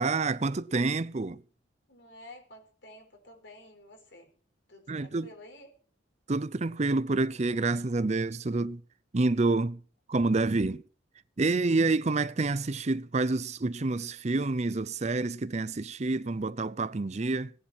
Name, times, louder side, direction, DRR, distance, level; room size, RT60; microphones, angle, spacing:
voice 1, 0.0-1.4 4.9-5.3 6.3-8.8 9.1-9.8 10.1-10.8 11.4-17.5, right 3 dB, 35° right, 0.6 m, -28 dB
voice 2, 1.9-4.3 4.7-5.7, left 1 dB, 65° left, 4.7 m, -51 dB
17.5 x 10.5 x 6.1 m
head